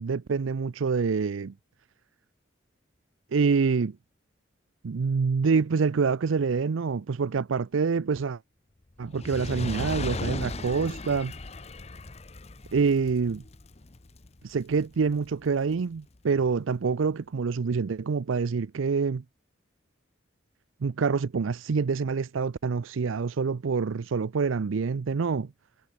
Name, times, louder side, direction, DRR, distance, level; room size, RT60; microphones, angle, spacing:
voice 1, 0.0-1.5 3.3-4.0 4.8-8.4 9.0-11.3 12.7-13.4 14.4-19.2 20.8-25.5, right 5 dB, 90° right, 0.5 m, -26 dB
Fire, 9.0-15.5 16.1-16.2, left 2 dB, 35° left, 0.9 m, -37 dB
head